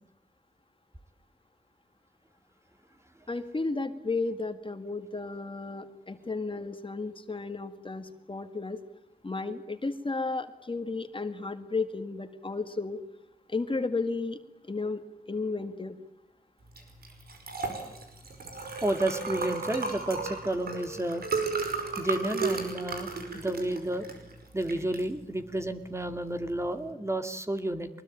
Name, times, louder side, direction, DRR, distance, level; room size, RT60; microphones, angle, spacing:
voice 1, 3.3-8.8 9.2-13.0 13.5-14.4 14.6-15.0 15.3-16.0, left 3 dB, 35° left, 8 dB, 1.9 m, -33 dB
Liquid, 16.7-26.9, right 4 dB, 85° right, 5.3 m, -35 dB
voice 2, 18.8-21.3 22.0-24.1 24.5-27.9, right 1 dB, 20° right, 7 dB, 2.2 m, -31 dB
23.5 x 21.0 x 9.0 m, 0.82 s
wide cardioid pair, 70°, 15 cm